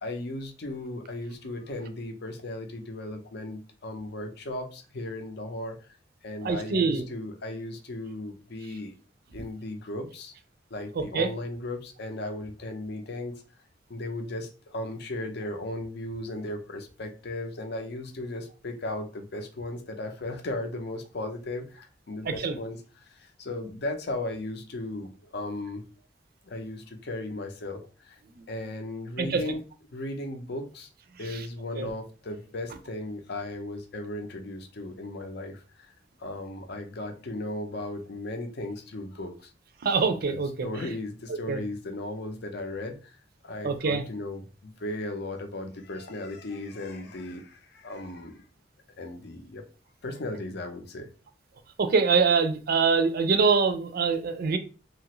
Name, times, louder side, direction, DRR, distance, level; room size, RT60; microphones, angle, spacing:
voice 1, 0.0-5.8 6.2-9.0 9.3-10.3 10.7-13.4 13.9-25.8 26.4-28.2 28.5-29.6 29.9-30.9 31.2-35.9 36.2-39.5 40.3-43.2 43.4-48.4 49.0-49.6 50.0-51.1, left 2 dB, 60° left, 0.6 m, -36 dB
voice 2, 6.4-7.0 11.0-11.3 22.3-22.5 29.2-29.4 31.8-31.9 39.8-40.5 41.5-41.6 43.6-44.0 51.8-54.6, right 5 dB, 55° right, 0.4 m, -24 dB
2.8 x 2.4 x 2.9 m
head